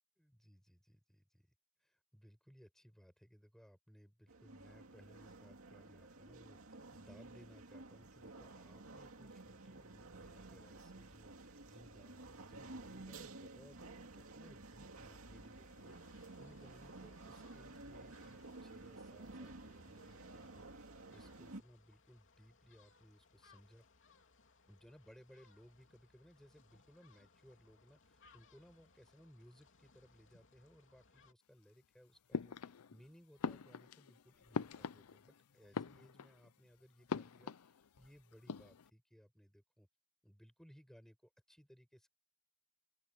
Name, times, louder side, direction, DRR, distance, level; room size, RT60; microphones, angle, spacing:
voice 1, 0.2-1.5 1.8-23.8 24.7-39.9 40.2-42.1, equal, ahead, 7.0 m, -63 dB
sound 1, 4.3-21.6, right 2 dB, 65° right, 2.5 m, -53 dB
sound 2, 15.3-31.3, left 4 dB, 60° left, 3.1 m, -68 dB
sound 3, 32.3-33.0 33.4-35.4 35.6-36.5 37.1-38.1 38.3-38.9, left 5 dB, 80° left, 0.5 m, -43 dB
open air
head